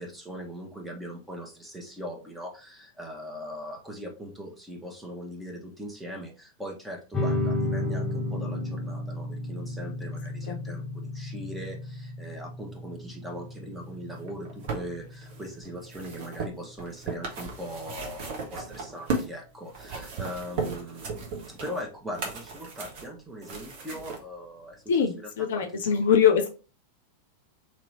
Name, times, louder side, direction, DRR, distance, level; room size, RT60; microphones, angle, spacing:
voice 1, 0.0-24.8 25.2-26.0, equal, 5° right, 0 dB, 1.1 m, -40 dB
sound 1, 7.1-18.1, left 2 dB, 15° left, 1.1 m, -34 dB
sound 2, 14.2-19.4 19.7-24.2 25.0-25.1, right 4 dB, 50° right, 1.0 m, -36 dB
voice 2, 24.9-26.5, left 7 dB, 60° left, 5 dB, 0.6 m, -22 dB
3.1 x 3.0 x 4.1 m, 0.34 s
figure-of-eight pair, 90°, 0 cm